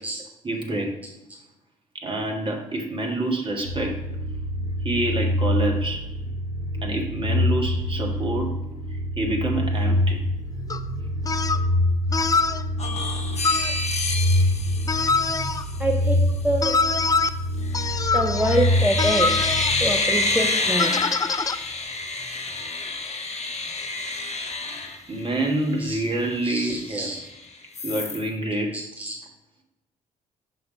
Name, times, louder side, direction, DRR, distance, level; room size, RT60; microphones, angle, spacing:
voice 1, 0.4-0.9 1.9-3.9 4.8-6.0 6.8-8.5 9.2-10.2 25.1-27.1 27.8-28.8, right 1 dB, 30° right, 0 dB, 1.6 m, -27 dB
sound 1, 3.5-20.4, left 1 dB, 85° right, 1.3 m, -26 dB
sound 2, 10.7-10.8 11.2-11.6 12.1-12.6 13.4-13.7 14.9-15.6 16.6-17.3 17.7-18.7 19.0-19.7 20.8-21.6, left 4 dB, 20° left, 0.4 m, -24 dB
sound 3, 12.8-15.8 17.6-18.0 18.4-25.6 26.1-26.2 26.4-27.3 27.7-28.2, left 3 dB, 35° left, 1.0 m, -28 dB
voice 2, 15.8-16.7 18.1-19.5 19.8-20.9 25.8-26.0 26.4-27.2 28.7-29.2, right 1 dB, 10° right, 2 dB, 0.7 m, -26 dB
5.5 x 4.2 x 5.0 m, 0.93 s
figure-of-eight pair, 45°, 18 cm